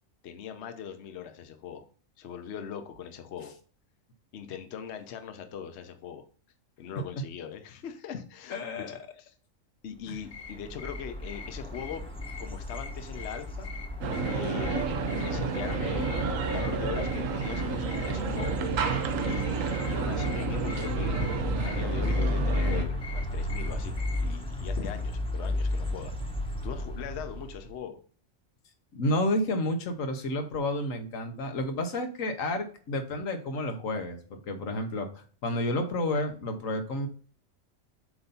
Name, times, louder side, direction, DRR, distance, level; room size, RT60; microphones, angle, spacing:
voice 1, 0.2-1.8 2.2-3.5 4.3-6.3 6.8-9.3 9.8-12.0 12.4-13.7 14.2-18.6 19.2-21.3 21.6-23.9 24.2-26.1 26.6-28.0, left 7 dB, 60° left, 8 dB, 0.9 m, -40 dB
voice 2, 8.5-9.0 10.1-10.2 28.9-37.1, left 1 dB, 80° left, 6 dB, 1.4 m, -30 dB
sound 1, 10.2-24.4, left 5 dB, 35° left, 1.1 m, -46 dB
sound 2, 10.2-27.8, left 1 dB, 5° left, 0.9 m, -33 dB
sound 3, 14.0-22.9, right 5 dB, 80° right, 1.2 m, -31 dB
7.9 x 2.7 x 5.5 m, 0.43 s
omnidirectional pair, 1.4 m